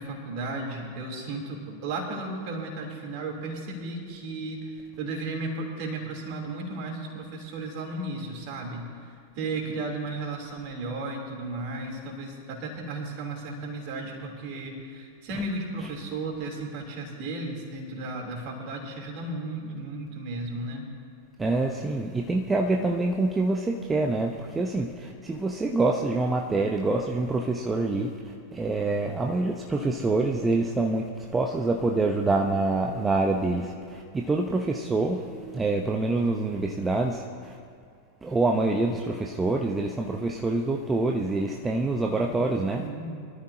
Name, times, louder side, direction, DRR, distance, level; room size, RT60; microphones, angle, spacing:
voice 1, 0.0-20.9 42.8-43.1, right 2 dB, 50° right, 0 dB, 3.3 m, -34 dB
voice 2, 21.4-37.6 38.2-42.9, right 2 dB, 15° right, 1 dB, 0.9 m, -26 dB
24.0 x 13.5 x 2.8 m, 2.3 s
figure-of-eight pair, 90°, 0 cm